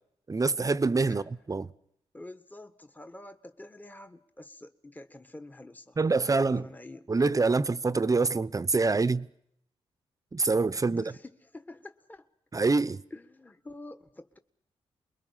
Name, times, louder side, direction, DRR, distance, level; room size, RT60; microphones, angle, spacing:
voice 1, 0.3-1.2 1.5-1.7 6.0-6.6 7.1-9.3 10.3-11.0 12.5-13.0, right 3 dB, 30° right, 0.8 m, -25 dB
voice 2, 2.1-7.0 10.8-12.3 13.1-14.4, left 2 dB, 15° left, 1.4 m, -47 dB
29.0 x 22.0 x 5.7 m
cardioid pair, 70°, 11 cm